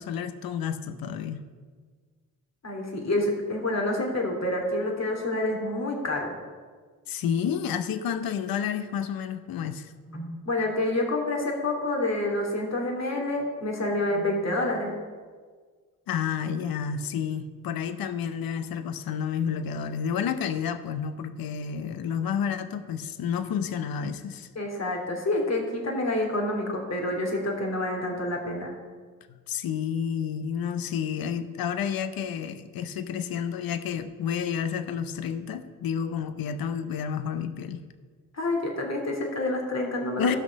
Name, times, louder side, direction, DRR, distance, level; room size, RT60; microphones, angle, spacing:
voice 1, 0.0-1.4 7.1-9.9 16.1-24.5 29.5-37.8 40.2-40.4, left 7 dB, 80° left, 11 dB, 0.7 m, -30 dB
voice 2, 2.6-6.3 10.1-14.9 24.5-28.7 38.3-40.4, left 1 dB, 45° left, 0 dB, 2.8 m, -28 dB
15.0 x 6.1 x 5.2 m, 1.6 s
cardioid pair, 55°, 35 cm